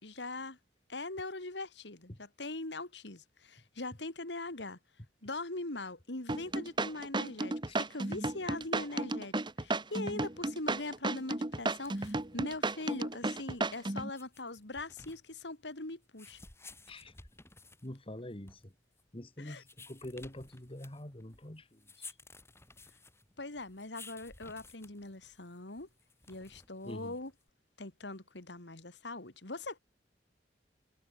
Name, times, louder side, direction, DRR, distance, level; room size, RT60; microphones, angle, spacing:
voice 1, 0.0-0.6 0.9-4.8 5.2-16.4 19.4-19.6 23.4-25.9 26.3-27.3 27.8-29.8, left 2 dB, 75° left, 2.8 m, -41 dB
sound 1, 6.3-14.1, right 2 dB, 25° right, 1.4 m, -33 dB
sound 2, 11.6-27.5, left 3 dB, 15° left, 4.1 m, -56 dB
voice 2, 17.8-18.7 19.1-22.2 26.8-27.2, left 1 dB, 30° left, 2.6 m, -45 dB
head